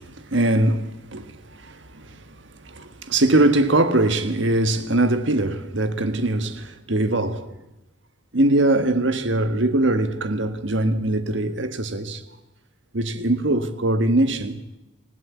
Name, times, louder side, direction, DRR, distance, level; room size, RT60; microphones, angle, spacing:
voice 1, 0.0-7.5 8.3-12.2 12.9-14.6, right 2 dB, 75° right, 1.6 m, -22 dB
27.5 x 15.5 x 8.4 m
head